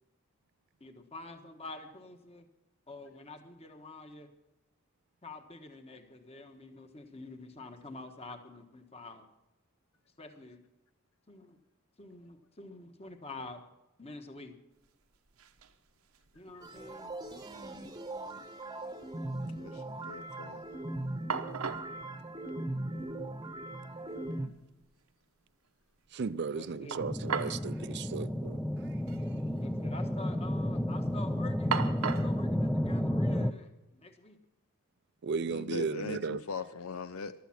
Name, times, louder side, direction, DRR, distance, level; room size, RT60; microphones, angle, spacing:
voice 1, 0.8-2.5 2.9-4.3 5.2-9.3 10.2-10.6 11.3-11.6 12.0-13.6 14.0-14.6 16.3-17.1 26.5-27.0 29.6-34.4, left 2 dB, 30° left, 1.3 m, -47 dB
sound 1, 14.8-14.9 15.1-15.8 16.1-17.0 17.3-17.4 20.8-20.9 21.3-21.9 23.1-23.2 23.5-23.6 26.9-27.7 27.9-28.1 29.0-29.2 29.5-30.0 30.4-30.8 31.7-32.4, right 6 dB, 85° right, 1.0 m, -36 dB
sound 2, 16.6-24.5, right 1 dB, 20° right, 1.0 m, -39 dB
voice 2, 19.6-20.6 35.5-37.3, left 4 dB, 80° left, 0.6 m, -40 dB
voice 3, 26.1-28.6 35.2-36.4, right 5 dB, 50° right, 0.4 m, -35 dB
sound 3, 27.0-33.5, left 1 dB, 5° left, 0.5 m, -32 dB
15.0 x 12.0 x 5.9 m
head